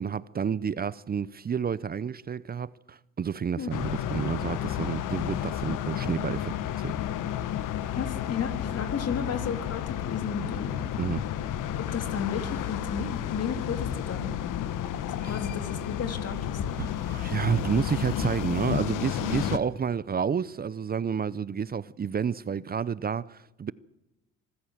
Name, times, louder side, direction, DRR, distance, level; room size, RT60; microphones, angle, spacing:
voice 1, 0.0-6.9 11.0-11.2 15.2-15.3 16.8-23.7, right 7 dB, 30° right, 0.6 m, -30 dB
sound 1, 3.7-19.6, left 11 dB, 70° left, 1.4 m, -31 dB
voice 2, 7.9-11.0 11.8-14.3 15.1-16.8, left 6 dB, 50° left, 3.2 m, -33 dB
25.5 x 14.0 x 7.4 m
supercardioid pair, 80°, 33 cm